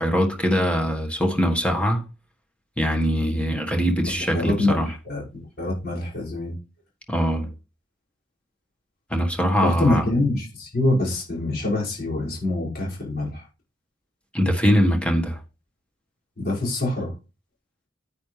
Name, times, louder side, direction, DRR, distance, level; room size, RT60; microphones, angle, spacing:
voice 1, 0.0-2.0 2.8-4.9 7.1-7.5 9.1-10.1 14.3-15.4, equal, 5° left, 1.5 m, -22 dB
voice 2, 4.1-5.2 5.6-6.5 9.6-13.4 16.4-17.1, left 2 dB, 50° left, 5.7 m, -25 dB
9.9 x 8.8 x 3.3 m
head